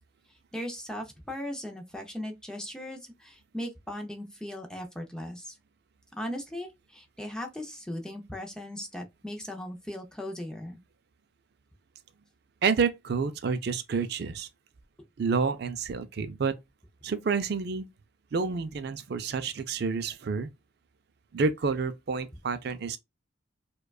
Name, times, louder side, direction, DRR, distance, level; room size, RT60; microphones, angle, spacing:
voice 1, 0.5-5.6 6.2-10.8, left 1 dB, 5° left, 0.5 m, -38 dB
voice 2, 12.6-14.5 15.2-16.5 17.0-17.8 18.3-20.5 21.3-23.0, right 5 dB, 55° right, 0.4 m, -29 dB
4.8 x 2.3 x 2.3 m
head